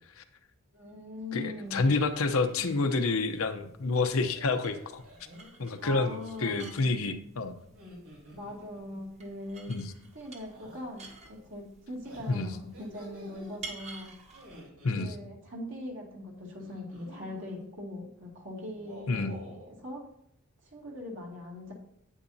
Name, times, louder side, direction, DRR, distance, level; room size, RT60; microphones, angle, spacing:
voice 1, 0.7-1.8 2.6-2.7 5.8-6.8 8.3-9.7 10.1-11.0 11.3-14.1 14.9-20.0 20.7-21.7, left 1 dB, 55° right, -1 dB, 2.3 m, -41 dB
voice 2, 1.3-5.0 5.6-7.5 9.7-9.9 12.3-12.6 14.8-15.1 19.1-19.4, left 3 dB, 70° left, 7 dB, 0.8 m, -29 dB
sound 1, 1.4-1.7 2.1-2.6 4.3-5.6 7.6-9.0 10.5-10.8 12.0-13.6 14.3-15.1 16.6-17.7 18.7-19.7, equal, 85° right, 3.6 m, -50 dB
sound 2, 1.6-14.6, right 4 dB, 30° right, 1.3 m, -52 dB
9.9 x 8.9 x 2.7 m, 0.72 s
head